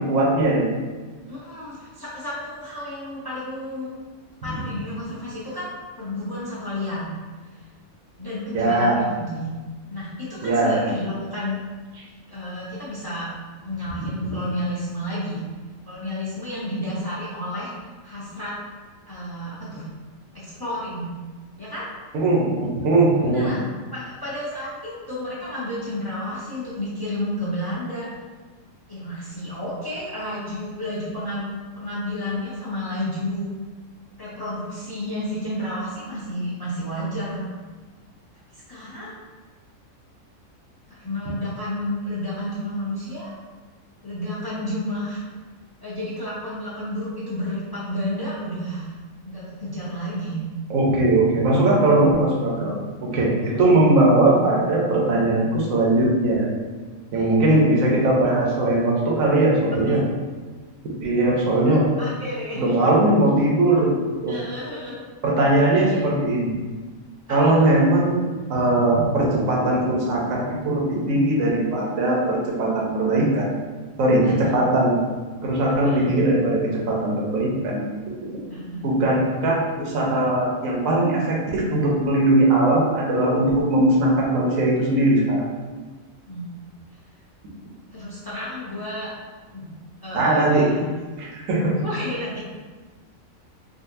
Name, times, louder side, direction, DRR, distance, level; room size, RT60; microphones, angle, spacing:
voice 1, 0.1-0.7 4.5-4.6 8.5-9.0 10.4-10.7 22.1-23.5 50.7-52.7 53.1-56.5 57.1-60.0 61.0-61.9 62.6-63.9 64.2-64.4 65.2-66.6 67.3-68.2 68.5-73.5 74.0-75.0 75.4-77.8 78.8-85.4 90.1-90.6 91.2-91.8, right 2 dB, 80° right, -3 dB, 1.1 m, -20 dB
voice 2, 1.3-3.9 4.4-7.2 7.5-7.7 8.2-9.5 9.9-11.6 12.3-13.3 13.6-15.5 15.9-17.7 18.0-18.6 19.1-19.9 20.3-21.1 21.6-21.9 23.2-23.6 23.9-28.1 28.9-31.4 31.7-33.5 34.2-37.4 38.5-39.2 40.9-43.3 44.0-45.2 45.8-48.9 49.2-50.4 53.4-53.9 57.1-57.7 59.9-60.0 62.0-62.7 64.3-65.0 65.9-66.0 67.3-67.8 74.2-74.6 75.8-76.1 78.5-78.8 86.3-86.5 87.9-89.1 89.5-89.7 90.0-90.8 91.8-92.4, left 1 dB, 20° left, -9 dB, 0.6 m, -31 dB
3.8 x 2.4 x 2.6 m, 1.4 s
omnidirectional pair, 1.4 m